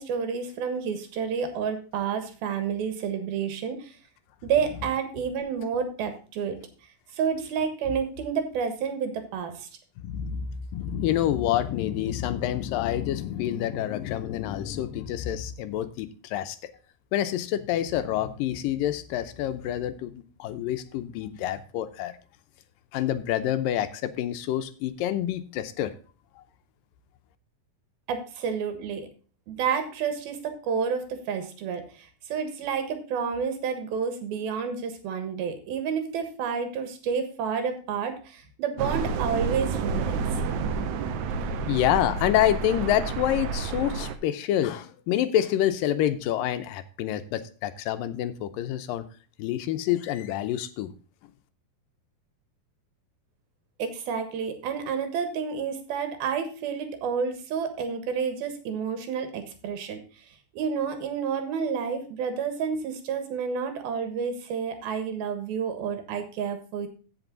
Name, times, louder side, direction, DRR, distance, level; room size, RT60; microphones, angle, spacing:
voice 1, 0.0-3.9 4.4-6.6 7.1-9.7 28.1-29.1 29.5-40.2 53.8-60.0 60.5-66.9, right 6 dB, 90° right, 8 dB, 3.5 m, -30 dB
voice 2, 10.0-16.6 17.1-20.1 20.4-22.1 22.9-25.9 41.5-49.1 49.4-50.9, left 11 dB, 80° left, 11 dB, 2.3 m, -27 dB
sound 1, 38.8-44.1, right 5 dB, 70° right, 1.9 m, -29 dB
15.5 x 5.4 x 3.9 m, 0.37 s
omnidirectional pair, 4.1 m